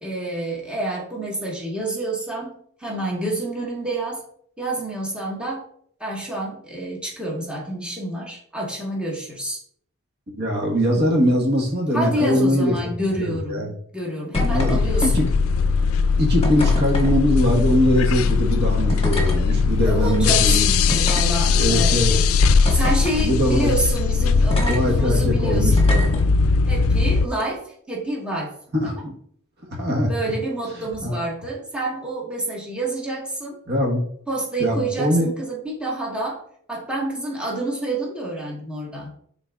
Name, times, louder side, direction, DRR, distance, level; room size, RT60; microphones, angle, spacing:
voice 1, 0.0-4.2 4.6-5.6 6.0-9.6 11.9-13.6 13.9-15.2 19.8-22.3 22.7-25.9 26.7-28.6 28.8-29.1 30.0-33.6 34.3-39.1, right 2 dB, 5° right, -4 dB, 1.5 m, -28 dB
voice 2, 10.3-12.9 13.2-13.7 14.5-15.3 16.2-20.7 21.5-22.2 23.2-23.7 24.3-26.0 28.7-28.9 29.6-30.1 31.0-31.2 33.7-34.0 34.6-35.3, equal, 50° right, -1 dB, 1.3 m, -22 dB
sound 1, 14.3-27.3, left 4 dB, 75° left, 0.4 m, -19 dB
sound 2, 14.3-14.7 15.0-15.5 16.4-17.1 18.2-18.3 18.9-19.4 20.1-20.2 20.9-21.8 22.6-23.3 24.5-24.8 25.7-26.2 27.3-27.4, left 1 dB, 30° left, 1.3 m, -28 dB
10.5 x 3.9 x 2.4 m, 0.63 s
head